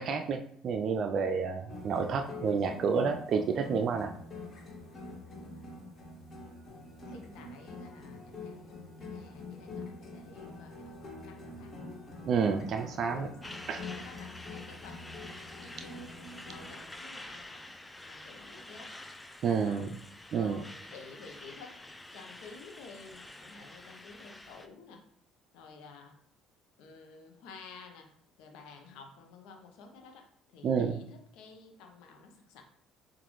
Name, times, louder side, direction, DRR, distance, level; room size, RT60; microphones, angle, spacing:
voice 1, 0.0-4.1 12.2-13.3 13.7-13.8 19.4-20.0 20.3-20.6 30.6-31.0, right 5 dB, 55° right, 6 dB, 0.4 m, -29 dB
sound 1, 1.7-16.8, left 2 dB, 35° left, 1.8 m, -45 dB
voice 2, 2.7-3.0 5.3-5.7 7.0-11.8 12.8-15.2 15.6-17.7 18.1-19.0 19.6-19.9 20.3-21.8 22.1-25.0 25.5-26.2 26.8-28.1 28.4-32.6, left 4 dB, 70° left, 4 dB, 0.8 m, -52 dB
Truck, 13.4-24.7, left 1 dB, 15° left, 0.5 m, -48 dB
6.8 x 2.5 x 3.1 m, 0.63 s
hypercardioid pair, 60°, 0 cm